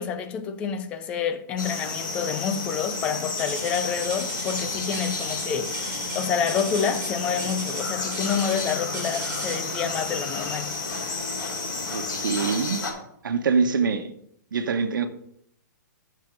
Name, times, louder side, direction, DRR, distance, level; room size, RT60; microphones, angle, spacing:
voice 1, 0.0-10.7, left 7 dB, 10° left, 0.4 m, -28 dB
sound 1, 1.6-12.9, left 3 dB, 85° left, 3.6 m, -31 dB
sound 2, 3.4-9.8 10.7-11.0 11.5-11.6 12.3-12.4, right 3 dB, 15° right, 2.6 m, -37 dB
voice 2, 11.9-12.8 13.2-14.1 14.5-15.1, right 5 dB, 85° right, 1.2 m, -24 dB
9.5 x 6.7 x 5.2 m
hypercardioid pair, 175°, 10 cm